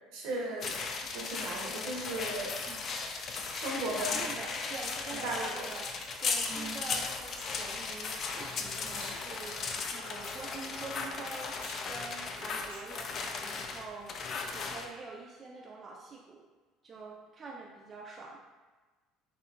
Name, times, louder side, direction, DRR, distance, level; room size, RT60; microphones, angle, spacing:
voice 1, 0.1-0.7 1.1-2.5 3.6-4.2 5.1-5.5 6.5-6.8, right 1 dB, 65° right, -2 dB, 0.6 m, -36 dB
sound 1, 0.6-14.9, left 4 dB, 45° left, 0.3 m, -36 dB
sound 2, 3.0-14.8, left 1 dB, 85° left, 0.8 m, -54 dB
voice 2, 3.5-11.5 11.9-14.1 14.5-16.4 16.8-18.4, right 3 dB, 35° right, -2 dB, 0.3 m, -45 dB
3.4 x 2.8 x 2.3 m, 1.3 s
figure-of-eight pair, 60°, 0 cm